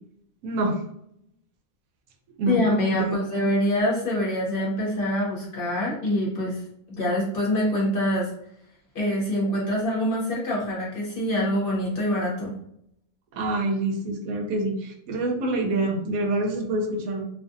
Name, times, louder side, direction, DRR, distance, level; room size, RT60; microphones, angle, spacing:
voice 1, 0.4-0.8 2.4-2.6 2.9-3.1 13.3-17.3, right 2 dB, 80° right, 3 dB, 1.0 m, -26 dB
voice 2, 2.5-6.6 7.0-8.3 8.9-12.5, left 1 dB, 45° left, -5 dB, 0.9 m, -25 dB
2.5 x 2.5 x 2.5 m, 0.73 s
omnidirectional pair, 1.5 m